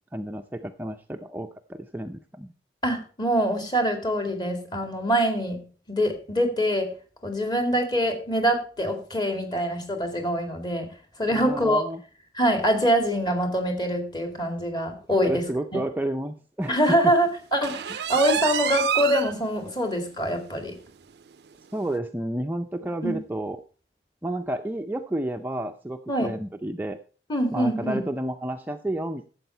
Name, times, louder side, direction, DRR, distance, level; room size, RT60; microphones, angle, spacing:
voice 1, 0.1-2.5 11.3-12.0 15.2-17.1 21.7-23.6 24.2-27.0 27.5-29.3, right 1 dB, 10° right, 5 dB, 0.5 m, -31 dB
voice 2, 2.8-5.6 5.9-6.9 7.2-10.9 11.2-11.8 12.3-15.5 15.7-15.8 16.7-20.8 23.0-23.2 26.1-26.3 27.3-28.0, equal, 25° left, 5 dB, 2.2 m, -24 dB
sound 1, 17.6-19.3 19.8-19.9 20.3-20.4 20.8-20.9 21.9-22.0, right 9 dB, 65° right, 0.4 m, -27 dB
12.0 x 7.8 x 4.5 m, 0.37 s
head